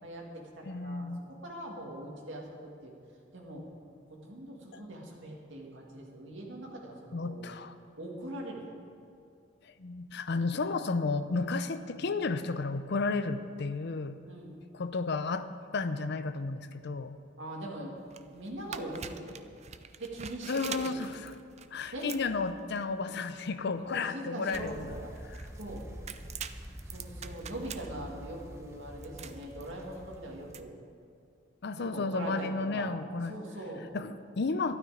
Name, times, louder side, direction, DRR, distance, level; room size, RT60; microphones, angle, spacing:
voice 1, 0.0-2.9 3.3-3.6 4.1-7.4 8.0-8.7 14.3-14.6 17.4-18.0 18.2-19.4 20.0-21.0 21.9-22.2 23.8-25.1 25.5-25.9 26.9-30.7 31.8-32.9 33.3-33.9, right 1 dB, 70° right, -1 dB, 2.3 m, -42 dB
voice 2, 0.6-1.3 4.7-4.8 7.1-7.7 9.6-14.2 14.7-17.2 20.5-21.3 21.7-24.9 31.6-33.4 33.9-34.8, left 3 dB, 60° left, 12 dB, 0.6 m, -33 dB
sound 1, 18.0-30.6, right 7 dB, 35° right, 0.5 m, -46 dB
sound 2, 24.6-30.6, equal, 15° right, 1.0 m, -46 dB
12.5 x 12.0 x 5.1 m, 2.4 s
head